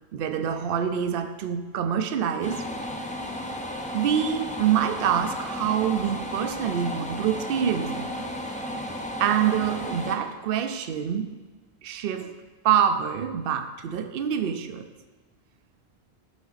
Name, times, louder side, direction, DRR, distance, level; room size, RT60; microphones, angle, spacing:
voice 1, 0.1-2.6 3.9-8.1 9.2-11.3 11.8-12.3 12.6-14.9, right 8 dB, 65° right, 9 dB, 0.7 m, -26 dB
sound 1, 2.4-10.2, equal, 10° left, 0.5 m, -34 dB
8.2 x 6.1 x 4.0 m, 1.3 s
omnidirectional pair, 1.1 m